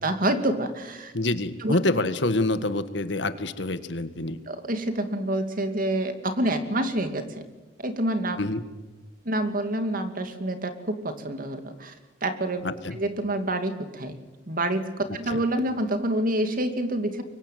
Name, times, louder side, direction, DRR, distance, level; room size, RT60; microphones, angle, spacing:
voice 1, 0.0-1.1 1.6-1.8 4.5-7.4 7.8-8.4 9.2-12.0 12.2-12.6 12.9-14.2 14.5-17.2, right 1 dB, 50° right, 8 dB, 2.6 m, -27 dB
voice 2, 1.1-4.4 8.4-8.6 12.6-13.0 15.3-15.4, left 2 dB, 75° left, 11 dB, 1.7 m, -26 dB
24.5 x 23.5 x 9.4 m, 1.2 s
head